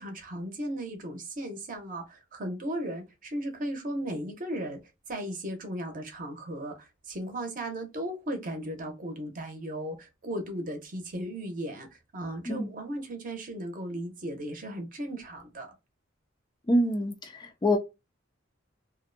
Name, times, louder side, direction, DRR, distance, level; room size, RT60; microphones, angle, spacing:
voice 1, 0.0-4.8 5.1-15.7, right 1 dB, 45° right, 0.7 m, -36 dB
voice 2, 16.7-17.8, left 1 dB, 20° left, 0.3 m, -26 dB
2.5 x 2.1 x 2.5 m
head